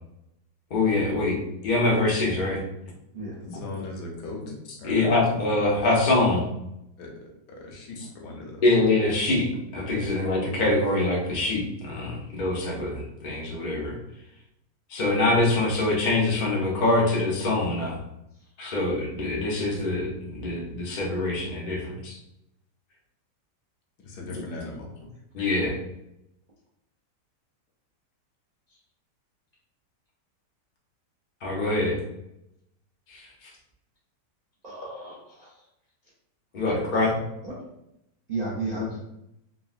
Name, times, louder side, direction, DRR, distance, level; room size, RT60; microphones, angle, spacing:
voice 1, 0.7-1.4 1.6-2.6 4.8-6.5 8.6-13.9 14.9-18.0 18.6-22.2 25.3-25.7 31.4-32.0 33.1-33.5 36.5-37.1, left 2 dB, 60° left, -3 dB, 0.5 m, -24 dB
voice 2, 3.4-5.2 7.0-8.6 24.0-24.9, left 2 dB, 75° left, 0 dB, 1.2 m, -39 dB
voice 3, 34.6-35.7 36.8-37.1 37.4-37.5 38.3-39.0, right 3 dB, 80° right, -7 dB, 0.3 m, -34 dB
3.6 x 2.0 x 2.4 m, 0.84 s
omnidirectional pair, 1.8 m